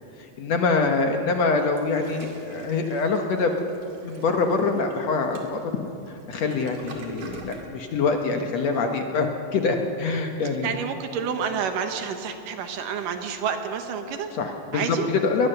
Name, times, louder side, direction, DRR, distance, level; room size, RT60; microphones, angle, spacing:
voice 1, 0.2-3.5 4.0-5.6 6.1-10.8 14.3-15.5, left 4 dB, 60° left, 4 dB, 2.0 m, -25 dB
Toilet flush, 1.5-7.7, right 4 dB, 55° right, 3.3 m, -43 dB
voice 2, 10.6-14.3 14.7-15.1, right 7 dB, 75° right, 6 dB, 2.8 m, -29 dB
20.5 x 20.5 x 6.8 m, 2.7 s
omnidirectional pair, 4.0 m